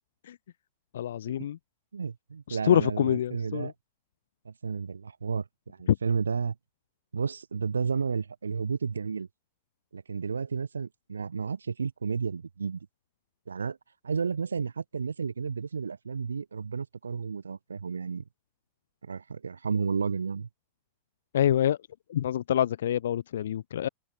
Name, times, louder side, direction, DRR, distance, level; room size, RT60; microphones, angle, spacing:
voice 1, 0.9-1.6 2.5-3.7 5.9-6.0 21.3-21.8 22.1-23.9, left 10 dB, 60° left, 3.7 m, -26 dB
voice 2, 1.9-3.7 4.4-6.5 7.1-9.3 9.9-12.8 13.5-13.8 14.0-18.2 19.0-20.5, right 5 dB, 75° right, 3.2 m, -32 dB
open air
figure-of-eight pair, 90°, 0 cm